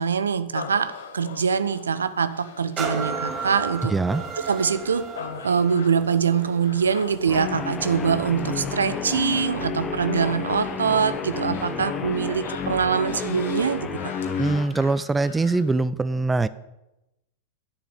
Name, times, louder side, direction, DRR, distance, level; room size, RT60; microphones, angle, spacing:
voice 1, 0.0-3.9 4.5-5.0 5.4-14.1, right 6 dB, 70° right, 13 dB, 0.7 m, -24 dB
Human voice, 0.5-15.7, left 7 dB, 65° left, 1.5 m, -42 dB
sound 1, 2.8-10.4 10.9-11.0, right 5 dB, 25° right, 1.4 m, -36 dB
voice 2, 3.9-4.2 14.4-16.5, right 3 dB, 10° right, 16 dB, 0.4 m, -23 dB
Guitar, 7.3-14.7, left 6 dB, 20° left, 1.1 m, -31 dB
10.5 x 6.9 x 8.5 m, 0.94 s
figure-of-eight pair, 90°, 0 cm